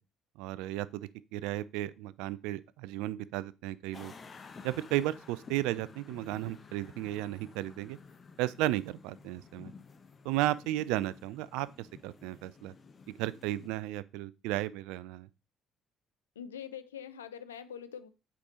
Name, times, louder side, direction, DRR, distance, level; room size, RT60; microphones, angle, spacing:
voice 1, 0.4-4.1 4.6-8.0 8.4-9.7 10.2-12.7 13.1-15.3, right 15 dB, 70° right, 0.3 m, -34 dB
sound 1, 3.9-13.7, left 5 dB, 40° left, 0.9 m, -53 dB
voice 2, 16.4-18.1, left 8 dB, 85° left, 0.4 m, -44 dB
8.2 x 4.9 x 2.9 m
hypercardioid pair, 50°, 0 cm